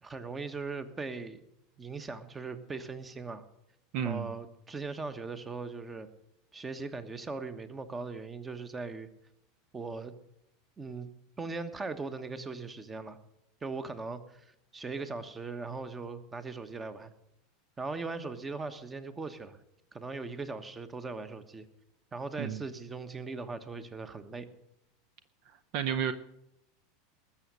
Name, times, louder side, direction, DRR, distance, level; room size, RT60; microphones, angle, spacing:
voice 1, 0.0-1.4 1.8-3.5 4.0-6.1 6.5-9.1 9.7-10.1 10.8-11.1 11.4-13.2 13.6-17.1 17.8-19.6 19.9-21.6 22.1-24.5, right 4 dB, 20° right, 11 dB, 1.2 m, -39 dB
voice 2, 3.9-4.3 22.4-22.6 25.7-26.1, right 8 dB, 50° right, 12 dB, 0.7 m, -31 dB
20.0 x 7.3 x 6.7 m, 0.81 s
figure-of-eight pair, 80°, 0 cm